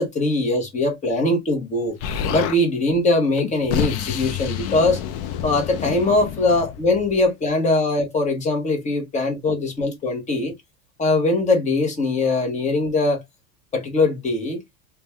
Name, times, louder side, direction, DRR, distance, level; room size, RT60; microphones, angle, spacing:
voice 1, 0.0-1.9 2.3-5.0 5.4-10.5 11.0-13.2 13.7-14.6, left 2 dB, 15° left, 0.9 m, -21 dB
Explosion, 2.0-2.6 3.4-7.2, left 9 dB, 40° left, 0.4 m, -28 dB
2.5 x 2.3 x 3.2 m
supercardioid pair, 120°, 42 cm